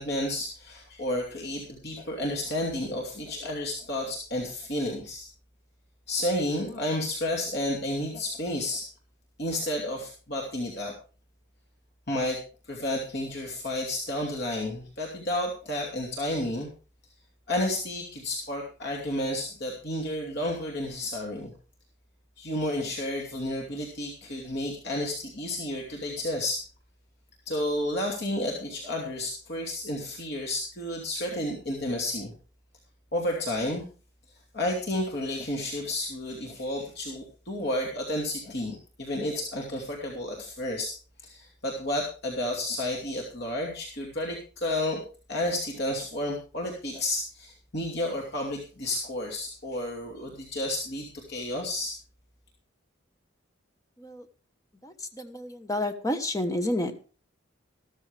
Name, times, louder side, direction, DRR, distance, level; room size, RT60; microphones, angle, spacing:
voice 1, 0.0-5.3 6.1-8.9 9.4-10.9 12.1-12.4 12.7-16.7 17.5-21.5 22.4-26.6 27.5-32.3 33.1-33.8 34.5-45.0 45.3-51.9, left 1 dB, 50° left, 0 dB, 2.7 m, -31 dB
voice 2, 54.8-56.9, left 1 dB, 15° left, 7 dB, 1.2 m, -30 dB
14.5 x 13.5 x 3.5 m, 0.36 s
head